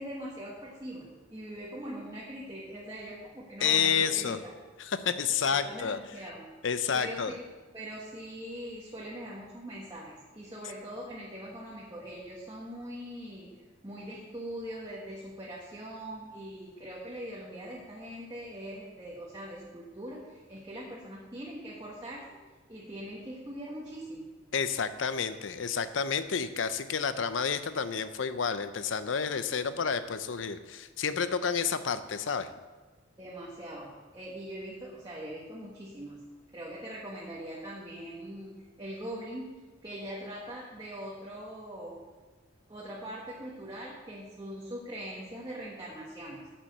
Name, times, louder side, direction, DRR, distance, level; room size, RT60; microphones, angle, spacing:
voice 1, 0.0-4.5 5.4-6.4 6.9-7.5 7.7-13.5 13.8-22.4 22.7-24.3 33.2-36.2 36.5-42.0 42.7-46.5, right 1 dB, 20° right, -5 dB, 1.4 m, -42 dB
voice 2, 3.6-4.4 4.8-6.0 6.6-7.3 24.5-32.5, left 6 dB, 70° left, 12 dB, 0.6 m, -30 dB
8.8 x 7.5 x 6.6 m, 1.3 s
head